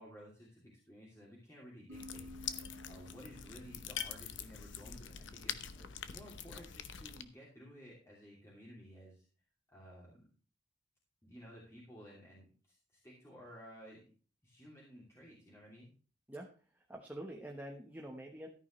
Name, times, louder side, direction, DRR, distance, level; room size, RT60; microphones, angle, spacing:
voice 1, 0.0-2.3 2.6-9.3 9.7-10.3 11.2-14.0 14.4-15.9, equal, 15° left, -5 dB, 2.9 m, -55 dB
sound 1, 1.9-7.2, left 8 dB, 85° left, 0.9 m, -44 dB
sound 2, 1.9-5.5, left 1 dB, 85° right, 1.0 m, -55 dB
voice 2, 16.7-18.5, right 1 dB, 10° right, 1 dB, 1.1 m, -46 dB
13.5 x 9.3 x 3.2 m, 0.39 s
head